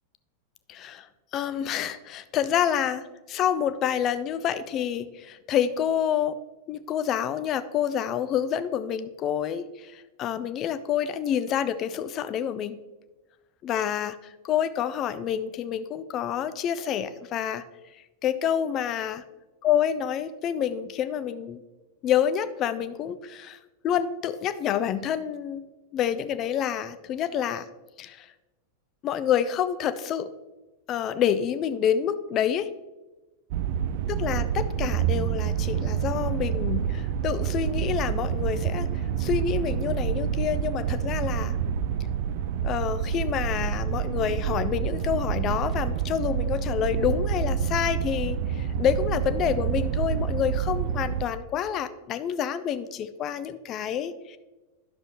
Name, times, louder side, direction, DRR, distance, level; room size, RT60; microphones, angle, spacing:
voice 1, 0.7-6.4 6.7-12.8 13.6-17.6 18.2-19.2 19.6-21.6 22.0-25.6 25.9-27.7 28.0-28.3 29.0-30.3 30.9-32.7 34.1-38.9 39.2-41.6 42.6-54.4, left 9 dB, 35° left, 12 dB, 0.4 m, -28 dB
sound 1, 33.5-51.3, right 8 dB, 50° right, 0.4 m, -28 dB
10.5 x 6.6 x 3.0 m, 1.1 s
figure-of-eight pair, 90°, 0 cm